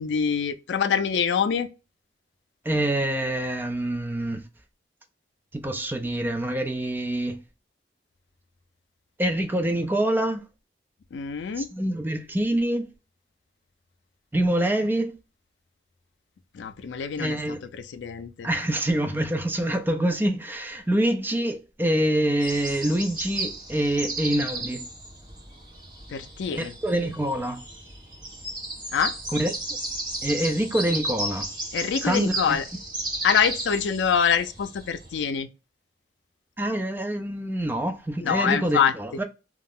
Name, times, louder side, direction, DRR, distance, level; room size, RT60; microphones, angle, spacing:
voice 1, 0.0-1.7 11.1-11.7 16.5-17.4 17.9-18.5 26.1-26.7 28.9-29.1 31.7-32.6 33.2-35.5 38.2-38.9, left 7 dB, 85° left, 0.4 m, -25 dB
voice 2, 2.6-4.5 5.5-7.4 9.2-10.4 11.6-12.9 14.3-15.2 17.2-17.6 18.4-24.9 26.5-27.6 29.4-29.5 30.2-31.5 32.0-32.6 36.6-39.2, right 1 dB, 10° right, 0.3 m, -26 dB
sound 1, 22.4-35.2, right 2 dB, 25° right, 0.9 m, -34 dB
2.4 x 2.0 x 3.4 m
head